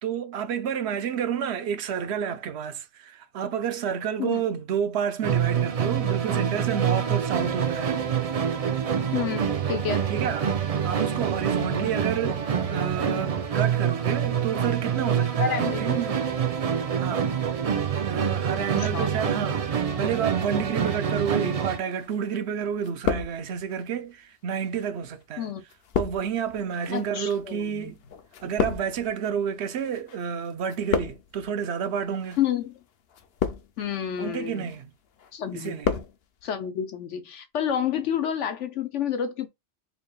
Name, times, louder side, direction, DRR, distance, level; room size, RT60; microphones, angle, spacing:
voice 1, 0.0-8.0 10.1-10.5 10.8-12.4 12.7-16.2 17.0-17.3 18.0-25.5 26.0-28.0 28.4-32.4 34.2-34.9 35.5-36.0, right 7 dB, 70° right, 0.9 m, -30 dB
Musical instrument, 5.2-21.9, right 7 dB, 50° right, 0.4 m, -26 dB
voice 2, 9.1-10.1 11.8-12.0 15.4-15.8 18.8-19.1 25.4-25.6 26.9-27.9 32.4-32.7 33.8-34.7 35.3-35.7 36.4-39.5, left 9 dB, 85° left, 1.2 m, -29 dB
sound 1, 21.9-22.5 22.8-23.8 24.5-30.2 30.4-31.5 32.2-32.5 33.1-33.9 34.4-34.8 35.2-36.1 36.4-36.5, left 6 dB, 60° left, 0.8 m, -31 dB
4.4 x 3.4 x 2.2 m
omnidirectional pair, 1.2 m